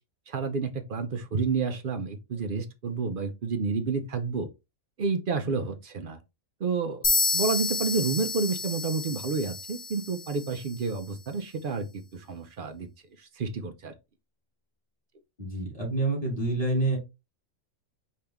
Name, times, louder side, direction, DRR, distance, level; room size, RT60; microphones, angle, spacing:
voice 1, 0.3-4.5 5.0-6.2 6.6-11.9 12.1-12.9 13.2-13.9, right 4 dB, 55° right, 0.6 m, -30 dB
sound 1, 7.0-10.8, left 3 dB, 45° left, 1.3 m, -30 dB
voice 2, 15.4-17.0, right 2 dB, 25° left, 2.2 m, -27 dB
5.3 x 2.8 x 3.4 m
omnidirectional pair, 1.4 m